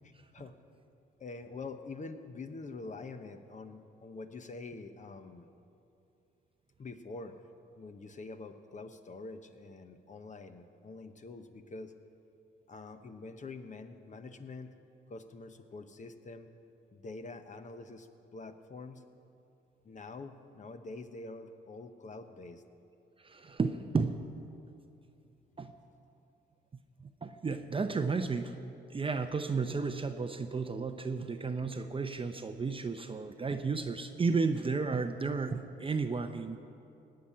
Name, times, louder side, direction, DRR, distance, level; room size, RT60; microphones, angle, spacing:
voice 1, 0.0-0.5 1.2-5.5 6.8-7.3 7.8-11.9 12.7-14.7 15.1-16.5 16.9-19.0 19.8-22.6, left 3 dB, 40° left, 8 dB, 1.0 m, -46 dB
voice 2, 23.2-24.3 25.6-25.7 27.0-28.6 28.9-36.6, right 4 dB, 25° right, 7 dB, 0.6 m, -33 dB
17.5 x 5.8 x 9.8 m, 2.7 s
cardioid pair, 90°, 20 cm